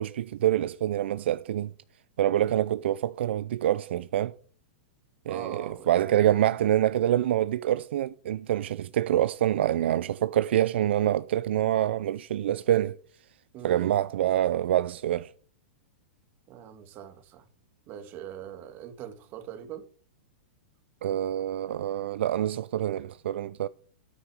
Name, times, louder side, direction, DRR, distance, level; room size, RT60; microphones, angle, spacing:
voice 1, 0.0-1.7 2.2-4.3 5.3-13.0 13.6-15.3 21.0-23.7, right 12 dB, 70° right, 0.5 m, -26 dB
voice 2, 5.3-5.9 13.5-14.0 16.5-17.5 17.9-19.8, right 10 dB, 35° right, 1.8 m, -41 dB
9.4 x 9.2 x 4.8 m
hypercardioid pair, 145°, 6 cm